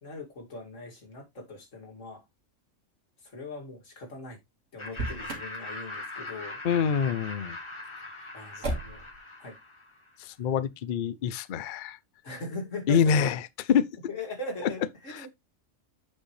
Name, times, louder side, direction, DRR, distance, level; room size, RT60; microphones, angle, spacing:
voice 1, 0.0-2.2 3.2-4.4 4.7-6.6 8.3-9.1 9.4-9.6 12.2-13.3 14.1-15.3, left 2 dB, 80° left, 2.8 m, -40 dB
Laughter, 4.8-10.1, left 2 dB, 25° left, 1.4 m, -41 dB
Motor vehicle (road), 4.9-5.6 8.6-9.2, right 2 dB, 75° right, 2.3 m, -33 dB
voice 2, 6.6-7.6 10.2-12.0 12.9-13.9 14.6-14.7 15.1-15.3, left 7 dB, 55° left, 0.6 m, -26 dB
8.9 x 5.4 x 3.2 m
omnidirectional pair, 1.3 m